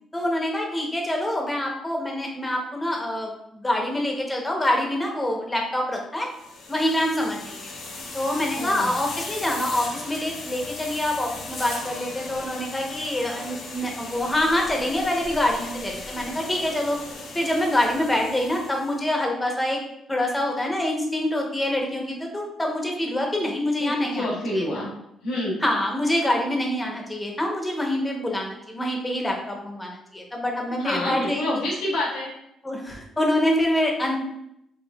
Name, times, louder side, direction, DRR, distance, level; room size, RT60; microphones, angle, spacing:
voice 1, 0.1-6.3 6.7-7.7 8.1-17.0 17.3-19.8 20.1-24.8 25.6-31.6 32.6-34.2, left 1 dB, 15° left, 0 dB, 0.8 m, -26 dB
sound 1, 6.3-19.0, left 3 dB, 70° left, 0.7 m, -37 dB
voice 2, 8.5-9.3 23.8-24.9 25.2-25.6 30.8-32.3, left 1 dB, 85° left, -4 dB, 1.2 m, -28 dB
4.5 x 2.5 x 2.3 m, 0.79 s
cardioid pair, 90°, 0 cm